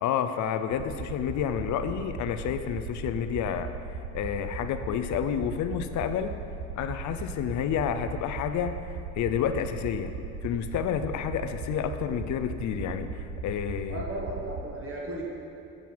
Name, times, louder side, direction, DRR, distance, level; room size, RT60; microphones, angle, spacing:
voice 1, 0.0-3.7 4.1-6.3 6.8-10.1 10.4-14.0, left 8 dB, 70° left, 9 dB, 0.5 m, -30 dB
sound 1, 0.7-14.7, right 4 dB, 85° right, 0.7 m, -37 dB
voice 2, 13.9-15.2, right 1 dB, 45° right, -3 dB, 1.6 m, -35 dB
7.5 x 5.4 x 4.6 m, 2.9 s
cardioid pair, 90°, 30 cm